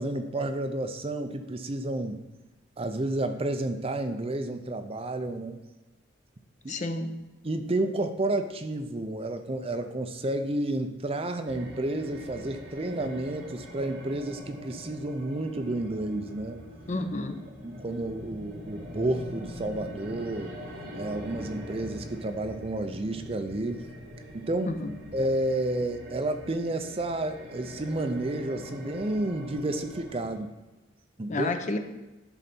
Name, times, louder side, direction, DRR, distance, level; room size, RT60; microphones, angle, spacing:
voice 1, 0.0-2.2 2.8-5.6 6.6-6.8 7.4-16.6 17.6-20.5 20.9-23.9 24.3-24.8 25.1-30.5 31.2-31.5, right 2 dB, 30° right, 7 dB, 0.5 m, -31 dB
voice 2, 6.7-7.1 16.9-17.4 24.7-24.9 31.3-31.8, left 2 dB, 40° left, 7 dB, 0.6 m, -30 dB
sound 1, 11.5-30.4, equal, 75° right, 3.5 m, -43 dB
11.0 x 4.0 x 5.9 m, 1.0 s
head